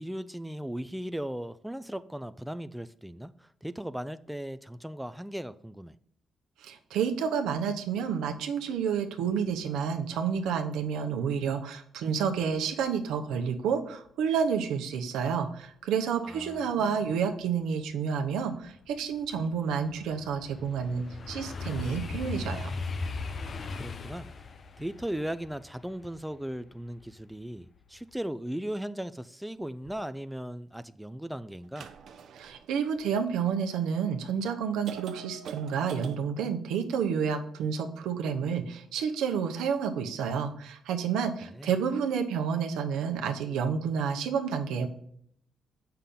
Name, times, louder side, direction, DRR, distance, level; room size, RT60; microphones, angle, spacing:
voice 1, 0.0-6.0 16.2-17.1 23.8-24.3 24.8-31.9 41.5-41.7, right 1 dB, 5° right, 0.3 m, -37 dB
voice 2, 6.6-22.8 32.3-44.9, right 7 dB, 90° right, 0.8 m, -30 dB
sound 1, 17.7-17.8 18.3-27.4 27.8-28.2, left 4 dB, 45° left, 0.6 m, -38 dB
sound 2, 29.8-29.9 31.6-33.5 34.2-34.3 34.8-36.2, right 7 dB, 65° right, 0.6 m, -44 dB
6.9 x 5.7 x 3.8 m
cardioid pair, 90°, 0 cm